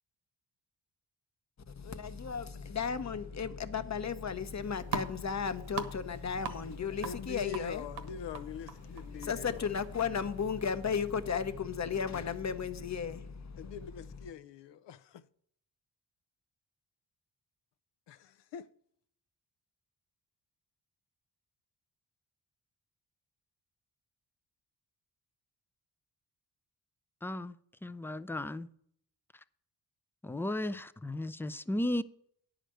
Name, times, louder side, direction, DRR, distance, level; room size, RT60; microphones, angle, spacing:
voice 1, 1.7-14.3, left 6 dB, 40° left, 0.9 m, -35 dB
sound 1, 4.3-11.1, right 6 dB, 80° right, 1.4 m, -44 dB
voice 2, 7.0-9.7 13.6-15.2 18.1-18.7, left 7 dB, 75° left, 0.6 m, -44 dB
voice 3, 27.2-27.5 27.8-28.7 30.2-32.0, left 1 dB, 5° left, 0.4 m, -35 dB
10.0 x 5.0 x 7.7 m
cardioid pair, 75°, 43 cm